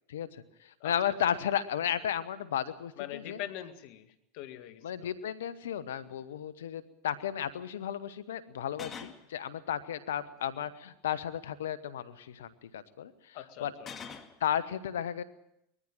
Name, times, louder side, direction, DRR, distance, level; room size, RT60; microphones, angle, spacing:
voice 1, 0.1-3.4 4.8-13.7 14.4-15.2, left 9 dB, 80° left, 15 dB, 1.3 m, -34 dB
voice 2, 3.0-5.1 13.3-13.9, left 12 dB, 60° left, 9 dB, 2.0 m, -43 dB
sound 1, 5.6-5.7 6.0-6.2 8.7-9.2 10.4-10.9 13.8-14.4, left 6 dB, 30° left, 2.1 m, -45 dB
21.0 x 14.0 x 9.1 m, 0.80 s
hypercardioid pair, 90°, 0 cm